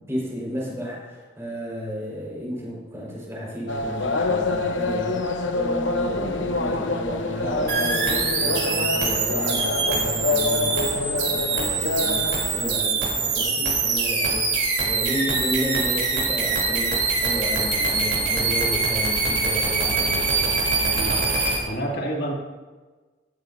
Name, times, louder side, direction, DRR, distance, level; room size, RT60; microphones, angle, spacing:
voice 1, 0.1-20.5, equal, 15° right, -4 dB, 4.6 m, -32 dB
sound 1, 3.7-12.8, left 3 dB, 75° left, 0.9 m, -26 dB
sound 2, 7.7-21.6, right 4 dB, 60° right, 3.4 m, -24 dB
voice 2, 20.9-21.3 21.7-22.3, right 1 dB, 55° left, -2 dB, 2.5 m, -28 dB
16.0 x 13.0 x 2.7 m, 1.3 s
head